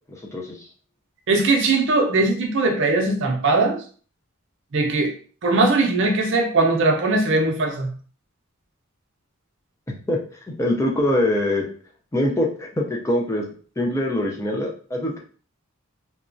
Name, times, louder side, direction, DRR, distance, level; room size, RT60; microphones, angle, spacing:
voice 1, 0.1-0.7 10.1-10.2 10.5-11.6 12.1-13.4 13.8-15.2, left 1 dB, 15° left, -1 dB, 0.4 m, -23 dB
voice 2, 1.3-3.8 4.7-5.1 5.4-7.9, right 3 dB, 60° right, 3 dB, 0.6 m, -20 dB
2.9 x 2.3 x 2.5 m, 0.42 s
head